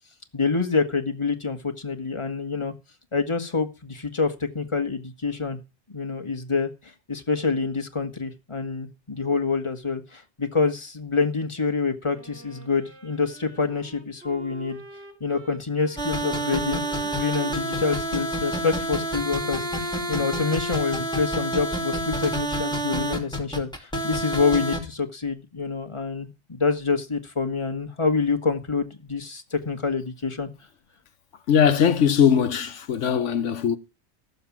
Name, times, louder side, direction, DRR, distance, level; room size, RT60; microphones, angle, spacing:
voice 1, 0.3-2.7 3.1-5.6 5.9-14.8 15.2-30.5, left 4 dB, 25° left, 1.7 m, -27 dB
Wind instrument woodwind instrument, 12.1-20.6, right 2 dB, 65° right, 3.8 m, -47 dB
sound 1, 16.0-24.8, right 1 dB, 5° left, 2.5 m, -28 dB
voice 2, 31.5-33.8, left 8 dB, 80° left, 1.2 m, -20 dB
15.0 x 6.9 x 7.3 m
omnidirectional pair, 1.2 m